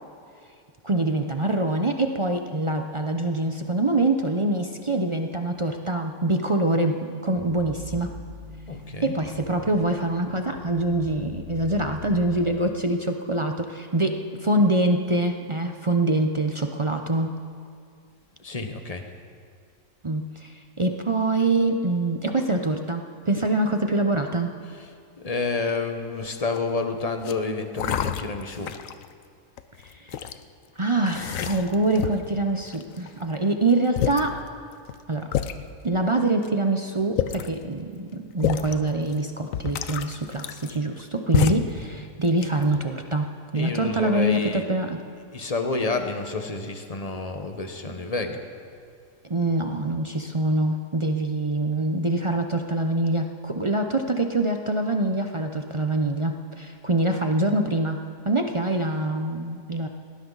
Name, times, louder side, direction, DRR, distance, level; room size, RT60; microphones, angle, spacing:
voice 1, 0.8-8.1 9.0-17.4 20.0-24.5 29.8-30.2 30.8-34.4 35.1-35.3 35.8-45.0 49.2-58.0 58.2-59.9, right 2 dB, 35° right, 4 dB, 0.5 m, -25 dB
sound 1, 7.3-12.5, left 2 dB, ahead, 2.6 m, -42 dB
voice 2, 8.7-9.2 18.4-19.0 24.6-24.9 25.2-28.7 43.5-44.7 45.3-48.4, left 3 dB, 25° left, 5 dB, 1.0 m, -29 dB
sound 2, 26.3-26.7 27.2-27.3 27.8-29.1 29.6-30.4 31.1-32.3 32.7-33.2 33.7-33.8 34.0-34.3 34.9-35.0 35.3-35.6 36.4-36.5 37.0-37.6 38.4-38.7 39.1-39.2 39.5-41.0 41.3-41.8 42.2-42.8, left 10 dB, 65° left, 1.0 m, -28 dB
18.5 x 18.5 x 4.0 m, 2.2 s
omnidirectional pair, 1.6 m